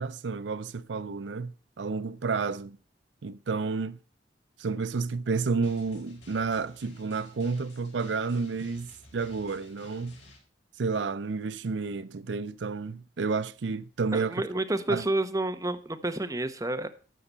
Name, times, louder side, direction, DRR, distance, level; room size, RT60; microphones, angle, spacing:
voice 1, 0.0-2.8 3.2-4.0 4.6-10.2 10.8-14.4 14.9-15.0, right 4 dB, 75° right, 0.5 m, -31 dB
Drum, 5.6-10.4, left 2 dB, 85° left, 5.2 m, -55 dB
voice 2, 14.1-16.9, right 2 dB, 20° right, 0.9 m, -29 dB
13.0 x 6.7 x 5.5 m
head